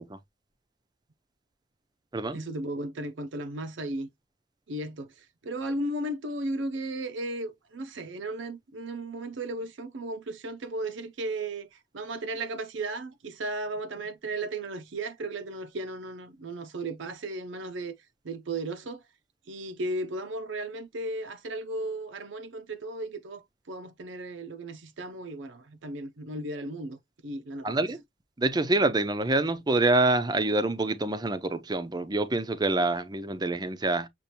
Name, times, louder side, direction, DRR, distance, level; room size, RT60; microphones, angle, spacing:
voice 1, 2.3-4.1 4.7-18.0 18.2-19.0 19.5-27.8, right 2 dB, 75° right, 0.6 m, -35 dB
voice 2, 27.6-28.0 28.4-34.1, right 2 dB, 20° right, 0.5 m, -26 dB
6.8 x 2.5 x 2.9 m
head